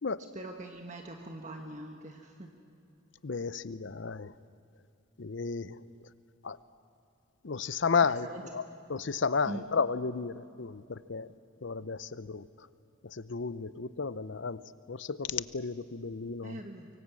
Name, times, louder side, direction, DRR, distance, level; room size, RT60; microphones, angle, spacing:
voice 1, 0.3-2.5 8.0-8.8 9.4-9.6 16.4-16.9, right 1 dB, 35° right, 3 dB, 1.4 m, -43 dB
voice 2, 3.2-4.3 5.2-5.8 6.4-6.6 7.4-8.6 8.9-11.3 11.6-12.5 13.0-14.6 14.9-16.6, left 5 dB, 65° left, 16 dB, 0.7 m, -33 dB
24.0 x 24.0 x 8.5 m, 2.6 s
head